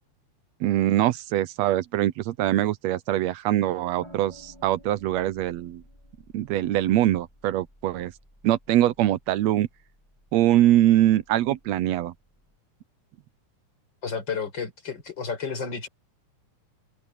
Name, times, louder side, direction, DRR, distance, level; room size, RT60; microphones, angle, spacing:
voice 1, 0.6-5.8 6.3-8.1 8.4-9.7 10.3-12.1, right 13 dB, 75° right, 1.7 m, -23 dB
sound 1, 4.0-12.6, equal, 10° left, 7.0 m, -55 dB
voice 2, 14.0-15.9, left 5 dB, 35° left, 6.1 m, -31 dB
omnidirectional pair, 3.5 m